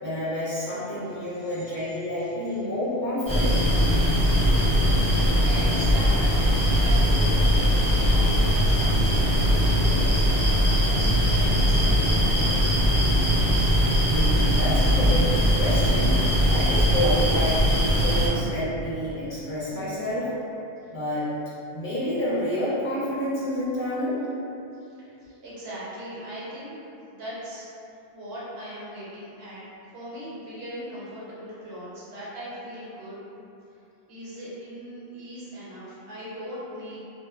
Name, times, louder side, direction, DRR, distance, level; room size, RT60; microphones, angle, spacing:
voice 1, 0.0-3.6 14.0-15.3 15.5-20.3 20.9-21.3 21.7-24.3, left 1 dB, 50° left, -10 dB, 0.7 m, -29 dB
voice 2, 1.0-2.6 5.4-6.4 6.7-12.0 12.3-12.6 25.0-26.8 27.1-27.7 28.1-29.6 29.9-33.2 34.1-37.0, equal, 65° right, -8 dB, 0.9 m, -40 dB
sound 1, 3.3-18.3, equal, 25° right, 0.6 m, -21 dB
2.1 x 2.0 x 3.4 m, 2.7 s
omnidirectional pair, 1.1 m